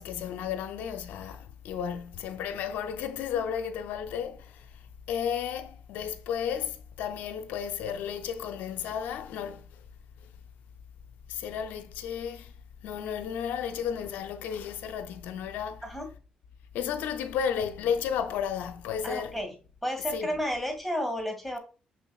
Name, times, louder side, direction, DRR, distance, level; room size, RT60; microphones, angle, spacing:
voice 1, 0.0-4.7 5.1-9.6 11.3-12.5 12.8-15.9 16.7-19.3 20.1-20.3, left 8 dB, 85° left, 0.5 m, -33 dB
voice 2, 19.0-19.5 19.8-21.6, equal, 5° left, 1.7 m, -32 dB
5.6 x 3.6 x 2.3 m
cardioid pair, 70°, 3 cm